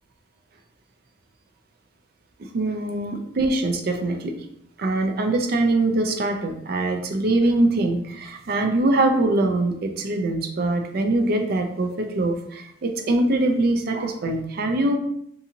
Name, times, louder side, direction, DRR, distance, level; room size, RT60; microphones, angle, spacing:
voice 1, 2.4-4.3 4.8-15.0, right 2 dB, 55° right, 4 dB, 0.4 m, -23 dB
2.6 x 2.5 x 2.8 m, 0.74 s
head